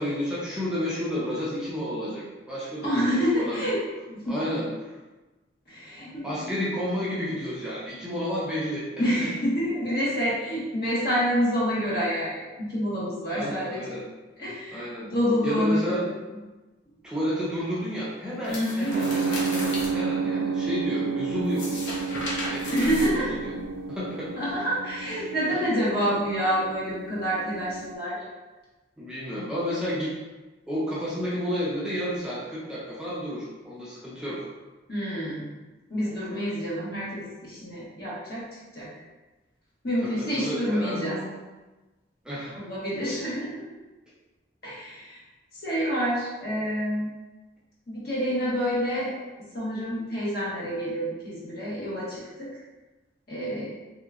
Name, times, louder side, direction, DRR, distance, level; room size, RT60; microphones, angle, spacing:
voice 1, 0.0-3.6 4.2-5.0 6.2-9.3 13.3-14.0 14.7-15.0 15.4-16.0 17.0-21.8 22.5-23.6 23.9-24.3 25.0-25.6 29.0-30.1 30.7-34.5 40.0-41.3 42.2-42.6, equal, 5° right, -8 dB, 0.5 m, -31 dB
voice 2, 2.8-3.8 4.1-4.3 5.7-6.5 9.0-13.9 14.4-16.0 18.5-19.0 22.7-23.3 24.4-28.2 34.9-35.5 35.9-38.5 38.7-38.9 39.8-41.1 42.5-43.6 44.6-45.2 45.6-47.1 47.9-49.1 49.5-52.5 53.3-53.7, equal, 55° left, -8 dB, 1.3 m, -28 dB
turning old pages, 18.4-19.9 21.4-23.7, left 1 dB, 80° left, 0.8 m, -35 dB
Detunned Piano Five Samples, 18.9-27.9, right 5 dB, 85° right, 0.3 m, -31 dB
3.3 x 2.8 x 2.4 m, 1.2 s
head